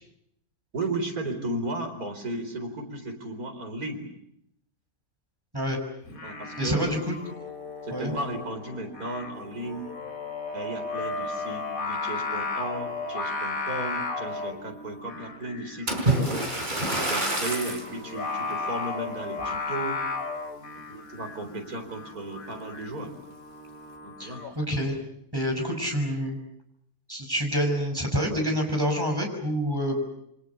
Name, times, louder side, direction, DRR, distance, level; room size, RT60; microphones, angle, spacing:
voice 1, 0.7-4.1 6.2-7.0 7.8-9.9 10.5-16.5 17.1-20.0 20.9-23.1 24.0-24.5, right 2 dB, 75° right, 5 dB, 4.8 m, -35 dB
Singing, 6.0-24.5, left 3 dB, 65° left, 2.7 m, -35 dB
voice 2, 6.6-7.2 7.9-8.1 24.2-25.0 25.3-26.4 27.1-30.0, equal, 15° right, 3 dB, 5.9 m, -27 dB
Splash splatter, 15.9-17.9 18.6-18.8 19.4-19.5, right 1 dB, 30° right, 4.8 m, -27 dB
28.0 x 25.0 x 7.0 m, 0.76 s
omnidirectional pair, 1.6 m